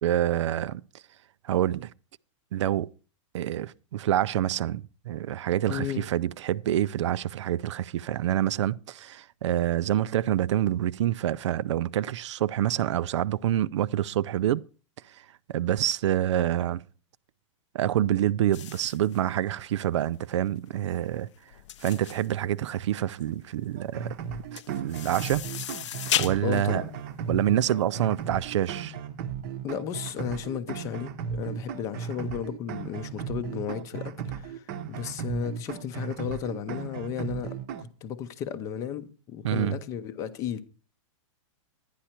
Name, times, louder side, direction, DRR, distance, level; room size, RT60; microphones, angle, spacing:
voice 1, 0.0-0.8 1.4-1.9 2.5-2.9 3.3-14.6 15.1-15.2 15.5-16.8 17.7-21.3 21.8-24.1 24.5-25.5 26.1-26.8 27.3-29.0 39.4-39.8, right 12 dB, 60° right, 0.4 m, -27 dB
voice 2, 5.7-6.1 26.4-26.9 29.6-40.6, left 9 dB, 20° left, 0.7 m, -34 dB
sound 1, 18.5-28.1, left 12 dB, 65° left, 0.6 m, -36 dB
sound 2, 23.8-37.9, right 7 dB, 35° right, 0.9 m, -36 dB
11.5 x 10.0 x 4.4 m
supercardioid pair, 170°, 17 cm